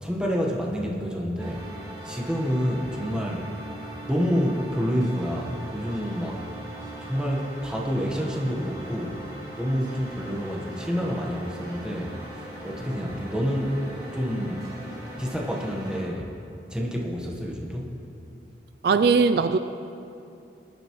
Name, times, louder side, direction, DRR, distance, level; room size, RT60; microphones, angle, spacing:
voice 1, 0.0-1.7 2.0-3.5 4.1-6.4 7.0-9.2 9.6-14.7 15.2-16.3 16.7-17.9, equal, 5° right, -2 dB, 1.2 m, -28 dB
sound 1, 1.4-16.0, right 1 dB, 20° right, 1.8 m, -40 dB
voice 2, 18.8-19.6, right 5 dB, 60° right, 10 dB, 0.3 m, -19 dB
20.5 x 9.1 x 3.1 m, 2.7 s
head